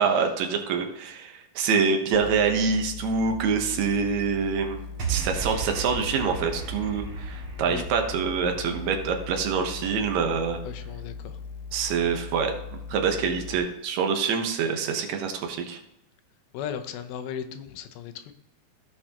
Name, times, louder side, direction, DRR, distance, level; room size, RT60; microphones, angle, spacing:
voice 1, 0.0-4.8 5.1-10.6 11.7-15.8, right 5 dB, 65° right, 4 dB, 2.0 m, -26 dB
sound 1, 2.1-13.6, left 5 dB, 70° left, 1.7 m, -39 dB
sound 2, 5.0-11.4, right 6 dB, 40° right, 2.4 m, -36 dB
voice 2, 10.6-11.4 16.5-18.4, left 8 dB, 90° left, 8 dB, 2.7 m, -36 dB
16.0 x 6.3 x 2.9 m, 0.89 s
omnidirectional pair, 4.2 m